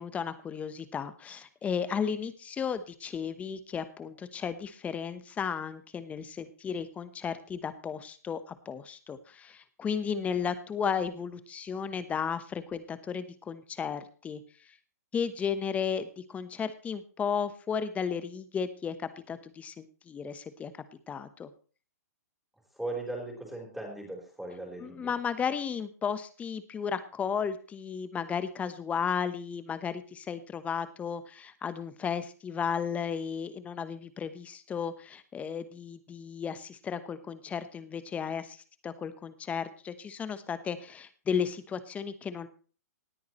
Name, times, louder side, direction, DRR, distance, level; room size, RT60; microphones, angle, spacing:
voice 1, 0.0-14.4 15.1-20.7 21.1-21.5 24.8-38.6 38.8-42.5, left 7 dB, 15° left, 13 dB, 1.0 m, -34 dB
voice 2, 22.7-25.1, right 2 dB, ahead, -1 dB, 4.3 m, -38 dB
19.0 x 9.3 x 3.1 m, 0.40 s
hypercardioid pair, 130°, 9 cm